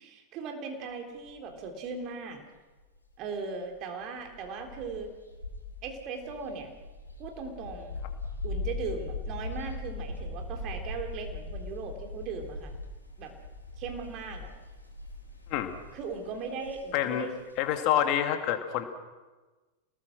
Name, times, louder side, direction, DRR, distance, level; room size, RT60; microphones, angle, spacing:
voice 1, 0.0-2.4 3.2-5.1 5.8-6.7 7.2-8.0 8.4-12.7 13.2-13.3 13.8-14.5 15.9-17.3, right 4 dB, 40° right, 4 dB, 3.7 m, -38 dB
sound 1, 1.3-1.6 3.1-3.2 3.6-3.7 4.2-17.8, left 2 dB, 90° left, 3.6 m, -40 dB
voice 2, 16.9-17.3 17.6-18.8, left 11 dB, 40° left, 6 dB, 2.3 m, -27 dB
28.0 x 19.5 x 6.3 m, 1.2 s
figure-of-eight pair, 90°, 0 cm